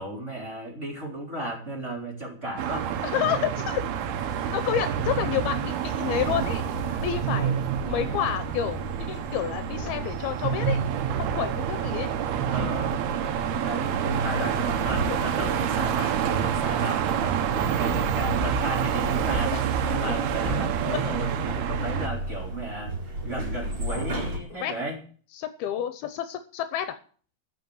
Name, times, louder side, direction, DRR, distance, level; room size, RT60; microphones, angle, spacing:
voice 1, 0.0-3.0 4.9-5.2 6.9-7.0 12.5-13.0 13.5-19.5 19.8-22.9 23.2-25.0, right 1 dB, 20° right, -2 dB, 3.7 m, -34 dB
sound 1, 2.6-22.1, right 8 dB, 85° right, 3.1 m, -28 dB
voice 2, 3.0-3.8 4.2-6.6 7.0-10.8 11.2-12.1 15.1-15.7 19.5-19.6 19.9-20.2 21.6-21.7 24.5-24.7 25.3-27.0, left 10 dB, 80° left, 9 dB, 2.7 m, -30 dB
sound 2, 6.2-24.4, right 1 dB, 35° right, 4.3 m, -36 dB
14.5 x 6.8 x 7.8 m, 0.44 s
omnidirectional pair, 4.4 m